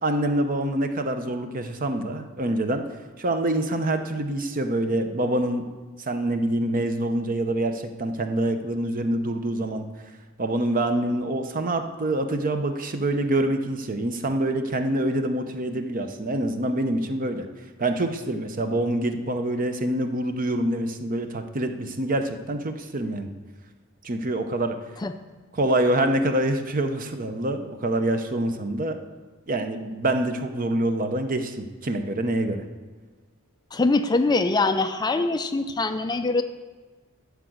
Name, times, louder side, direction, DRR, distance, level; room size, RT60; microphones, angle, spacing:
voice 1, 0.0-2.8 3.2-5.7 6.0-9.8 10.4-17.5 17.8-23.3 24.0-24.8 25.5-29.0 29.5-32.6, right 1 dB, 40° right, 7 dB, 0.8 m, -26 dB
voice 2, 33.7-36.4, left 3 dB, 20° left, 8 dB, 0.4 m, -23 dB
12.0 x 4.8 x 7.8 m, 1.3 s
head